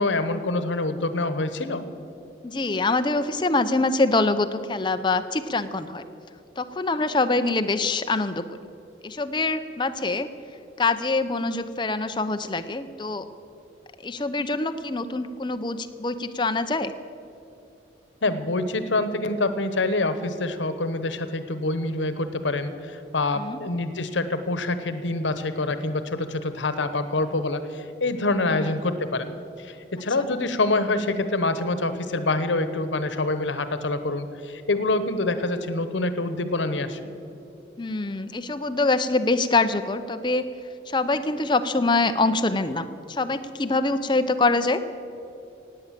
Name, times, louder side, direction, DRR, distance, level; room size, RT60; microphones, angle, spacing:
voice 1, 0.0-1.9 18.2-29.3 29.6-37.1, left 2 dB, 90° left, 11 dB, 1.0 m, -26 dB
voice 2, 2.4-6.0 6.6-8.6 9.0-10.3 10.8-13.3 14.0-16.9 23.4-23.6 28.5-28.7 37.8-40.5 40.9-44.8, left 3 dB, 25° left, 10 dB, 0.6 m, -24 dB
17.0 x 9.1 x 7.5 m, 2.7 s
head